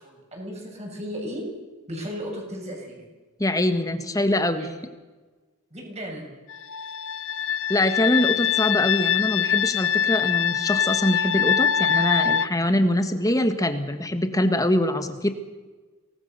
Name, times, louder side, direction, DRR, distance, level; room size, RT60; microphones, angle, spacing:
voice 1, 0.0-1.4 1.9-3.0 4.6-4.7 5.7-6.3, equal, 30° right, 0 dB, 7.5 m, -35 dB
voice 2, 3.4-4.7 7.7-15.3, left 1 dB, 15° left, 8 dB, 1.7 m, -23 dB
sound 1, 6.5-12.5, left 8 dB, 60° left, 0.7 m, -23 dB
25.5 x 19.5 x 6.9 m, 1.3 s
head